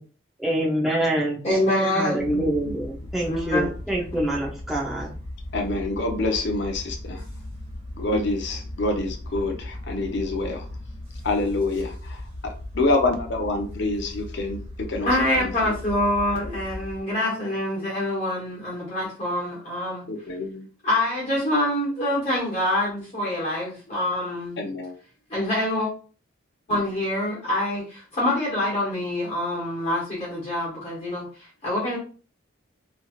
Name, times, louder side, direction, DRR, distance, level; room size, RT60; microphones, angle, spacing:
voice 1, 0.4-1.4 1.9-5.1, right 1 dB, ahead, -4 dB, 0.6 m, -25 dB
voice 2, 1.4-2.5 3.3-3.7 15.0-20.1 20.8-24.6 25.3-25.9 26.7-32.0, left 1 dB, 30° left, -6 dB, 1.2 m, -25 dB
sound 1, 2.2-17.0, left 1 dB, 30° right, 1.6 m, -37 dB
voice 3, 5.5-7.2 8.0-10.6 11.2-15.1 15.4-15.5 20.1-20.7 24.6-24.9 26.7-26.8, left 2 dB, 55° left, 2 dB, 0.5 m, -27 dB
3.1 x 2.7 x 2.3 m, 0.39 s
head